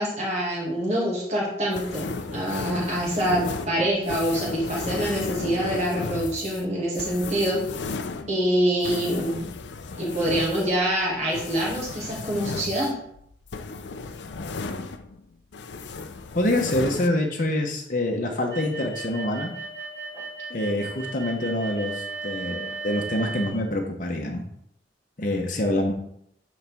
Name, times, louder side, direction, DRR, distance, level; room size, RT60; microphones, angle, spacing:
voice 1, 0.0-7.6 8.3-9.5 10.0-12.9, right 1 dB, 35° right, -4 dB, 2.2 m, -25 dB
sound 1, 1.7-15.2 15.5-17.1, left 4 dB, 70° left, 0.5 m, -35 dB
voice 2, 16.3-19.5 20.5-24.4 25.2-25.9, left 1 dB, 45° left, 1 dB, 0.9 m, -26 dB
sound 2, 18.5-23.5, right 3 dB, 20° right, 2.0 m, -35 dB
8.5 x 4.2 x 3.5 m, 0.72 s
head